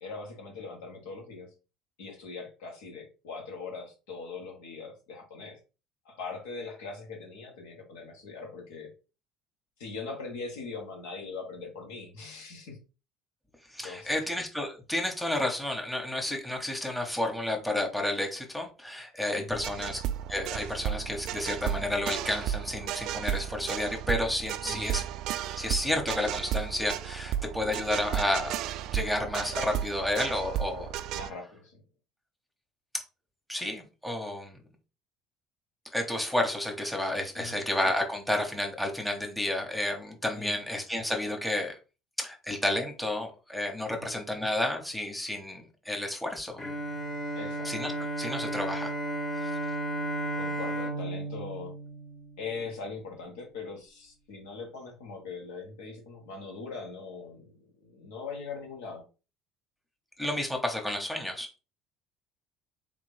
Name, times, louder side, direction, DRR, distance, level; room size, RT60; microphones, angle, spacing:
voice 1, 0.0-1.5 2.0-5.6 6.0-8.9 9.8-12.8 13.8-14.3 19.3-19.6 24.6-24.9 31.1-31.8 37.3-37.6 40.3-40.6 43.9-44.1 47.3-47.7 48.4-48.5 50.3-51.7 52.4-57.5 57.8-59.0, left 4 dB, 80° left, 0 dB, 1.7 m, -41 dB
voice 2, 13.7-20.0 20.3-25.0 25.6-28.5 28.9-30.9 32.9-33.0 33.5-34.6 35.9-41.7 42.2-46.6 47.6-47.9 48.2-48.9 49.3-49.5 60.2-61.6, left 1 dB, 5° left, 1 dB, 1.3 m, -31 dB
sound 1, 19.5-31.3, right 11 dB, 65° right, 0.3 m, -34 dB
Bowed string instrument, 46.6-52.8, right 1 dB, 35° left, 1.4 m, -34 dB
3.6 x 3.3 x 3.4 m, 0.31 s
hypercardioid pair, 70°, 0 cm